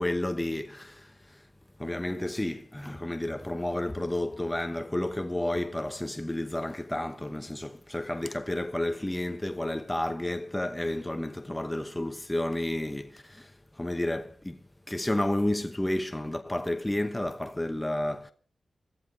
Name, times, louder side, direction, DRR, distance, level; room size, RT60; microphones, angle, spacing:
voice 1, 0.0-1.4 1.8-13.5 13.8-14.6 14.9-18.3, left 1 dB, 15° left, 0.9 m, -31 dB
18.0 x 14.0 x 5.2 m
cardioid pair, 50°, 0 cm